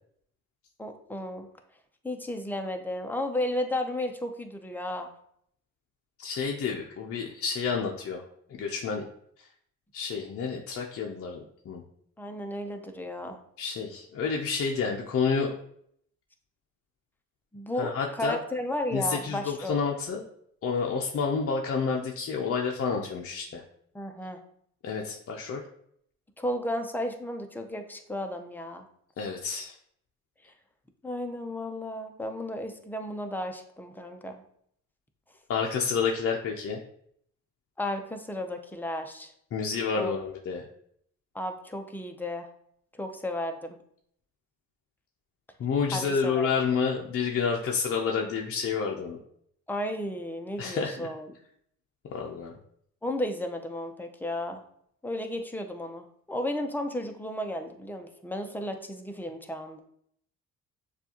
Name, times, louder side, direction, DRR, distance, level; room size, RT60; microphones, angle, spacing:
voice 1, 0.8-1.5 2.0-5.1 12.2-13.4 17.5-19.8 23.9-24.4 26.4-28.8 30.4-30.5 31.0-34.4 37.8-39.3 39.9-40.1 41.3-42.5 42.9-43.8 45.9-46.5 49.7-51.3 53.0-54.6 55.0-59.8, left 1 dB, 5° left, 5 dB, 0.6 m, -33 dB
voice 2, 6.2-8.2 8.6-9.0 9.9-11.8 13.6-15.5 17.8-18.4 18.9-20.2 20.6-23.6 24.8-25.6 29.2-29.7 35.5-36.8 39.5-40.7 45.6-49.2 50.6-51.1 52.1-52.5, left 5 dB, 50° left, 0 dB, 0.6 m, -29 dB
6.7 x 2.4 x 2.9 m, 0.68 s
cardioid pair, 90°, 30 cm